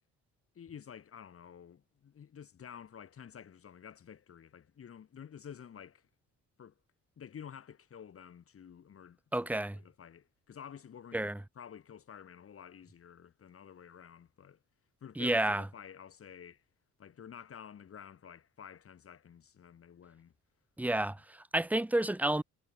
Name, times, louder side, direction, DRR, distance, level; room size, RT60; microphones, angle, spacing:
voice 1, 0.6-6.1 6.6-6.7 7.2-14.6 15.0-16.6 17.0-20.3, left 8 dB, 50° left, 1.8 m, -51 dB
voice 2, 9.3-9.8 11.1-11.4 15.2-15.7 20.8-22.4, right 1 dB, 5° right, 1.0 m, -30 dB
cardioid pair, 90°, 30 cm